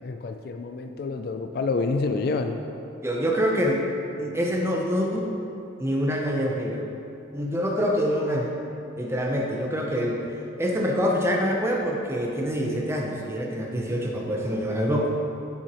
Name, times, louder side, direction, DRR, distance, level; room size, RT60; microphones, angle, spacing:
voice 1, 0.0-2.6, left 3 dB, 50° left, 6 dB, 0.3 m, -28 dB
voice 2, 3.0-3.8 4.2-5.4 5.8-6.8 7.3-8.5 9.0-10.1 10.6-15.1, equal, 15° right, 0 dB, 0.6 m, -25 dB
7.4 x 6.9 x 3.0 m, 2.7 s
head